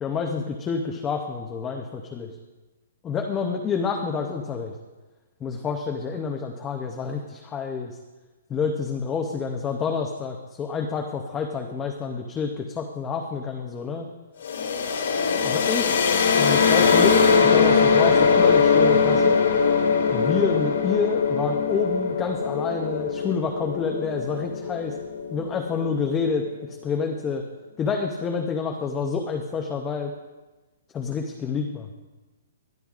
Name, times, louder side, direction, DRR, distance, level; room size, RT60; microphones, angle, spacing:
voice 1, 0.0-2.3 3.0-4.7 5.4-7.9 8.5-14.1 15.4-16.0 16.3-19.4 20.1-25.0 25.3-27.4 27.8-30.1 30.9-31.8, left 5 dB, 10° left, 3 dB, 0.5 m, -28 dB
sound 1, 14.4-26.1, left 5 dB, 60° left, 1.9 m, -21 dB
21.0 x 12.0 x 2.4 m, 1.2 s
hypercardioid pair, 180°, 0 cm